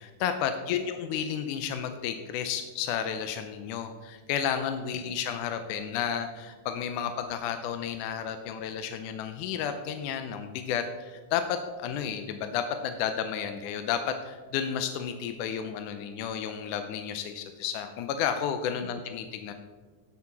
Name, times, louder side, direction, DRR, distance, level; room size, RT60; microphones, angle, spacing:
voice 1, 0.0-19.5, left 8 dB, 85° left, 8 dB, 2.2 m, -32 dB
8.7 x 8.4 x 5.9 m, 1.3 s
omnidirectional pair, 3.6 m